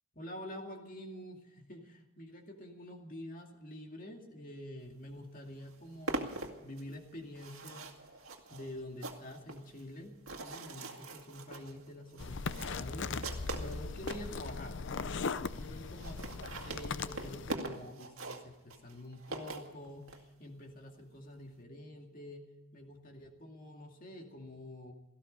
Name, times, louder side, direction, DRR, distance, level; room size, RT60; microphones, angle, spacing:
voice 1, 0.1-7.9 8.5-13.2 13.6-15.3 15.6-24.9, left 1 dB, 40° left, 3 dB, 2.3 m, -47 dB
sound 1, 5.1-5.2 5.4-14.3 14.9-15.0 15.2-15.3 15.5-15.6 15.8-20.2, right 2 dB, 65° right, 2.0 m, -43 dB
sound 2, 12.2-17.6, left 4 dB, 55° left, 0.6 m, -39 dB
17.5 x 15.0 x 5.4 m, 1.1 s
head